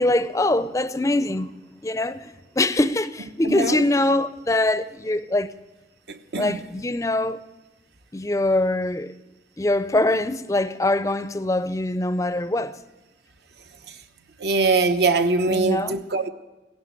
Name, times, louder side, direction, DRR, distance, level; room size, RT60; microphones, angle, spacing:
voice 1, 0.0-1.5 1.8-5.5 6.4-7.4 8.1-9.1 9.6-12.8 15.5-16.0, left 2 dB, 20° left, 0.5 m, -23 dB
voice 2, 3.4-3.8 6.1-6.6 13.9-14.0 14.4-16.3, right 3 dB, 70° right, 1.0 m, -22 dB
16.5 x 11.0 x 7.9 m
head